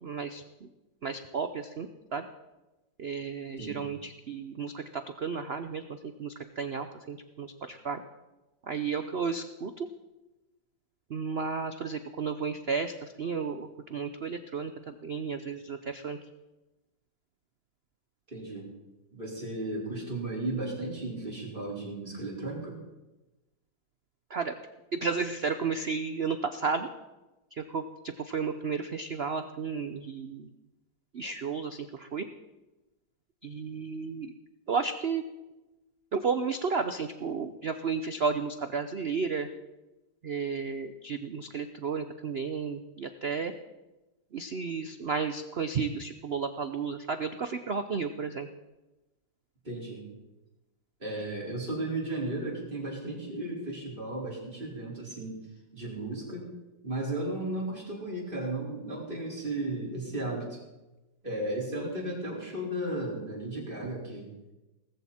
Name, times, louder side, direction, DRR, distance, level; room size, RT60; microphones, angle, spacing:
voice 1, 0.0-0.7 1.0-2.3 3.0-8.0 8.6-9.9 11.1-16.2 24.3-24.5 24.9-26.9 27.5-30.5 31.1-32.3 33.4-34.3 34.7-35.2 36.1-39.5 40.2-43.5 44.3-48.5, right 5 dB, 85° right, 9 dB, 0.5 m, -33 dB
voice 2, 18.3-18.7 19.1-22.7 49.6-50.0 51.0-55.3 55.7-56.5 56.8-60.6 61.2-64.3, right 2 dB, 25° right, -4 dB, 4.7 m, -35 dB
19.0 x 14.5 x 4.3 m, 1.0 s
omnidirectional pair, 2.1 m